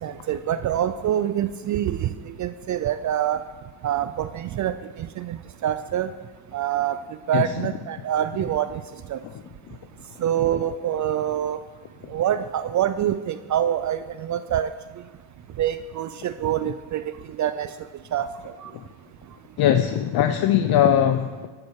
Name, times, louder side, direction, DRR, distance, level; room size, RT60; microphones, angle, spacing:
voice 1, 0.0-2.1 2.4-3.4 3.8-6.1 6.5-7.0 7.3-8.8 9.1-9.2 10.2-11.6 12.1-14.7 15.6-17.0 17.4-17.7 18.1-18.3 18.6-18.7, right 10 dB, 40° right, 12 dB, 0.5 m, -25 dB
voice 2, 7.3-7.7 9.2-9.8 10.1-10.2 18.7-18.8 19.6-21.5, left 10 dB, 50° left, 8 dB, 0.8 m, -22 dB
15.5 x 11.5 x 4.8 m, 1.4 s
cardioid pair, 120°, 49 cm